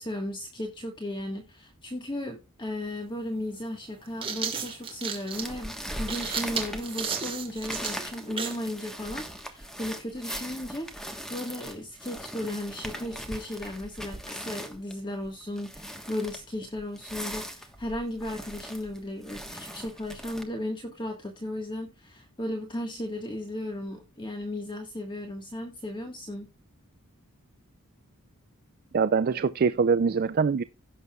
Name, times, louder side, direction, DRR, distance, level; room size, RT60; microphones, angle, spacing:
voice 1, 0.0-26.5, left 1 dB, 20° left, 1.5 m, -35 dB
sound 1, 2.8-2.9 3.9-8.7, right 6 dB, 25° right, 1.9 m, -34 dB
sound 2, 5.3-20.4, equal, ahead, 1.2 m, -40 dB
voice 2, 28.9-30.6, right 5 dB, 45° right, 0.4 m, -23 dB
16.5 x 6.8 x 2.3 m
head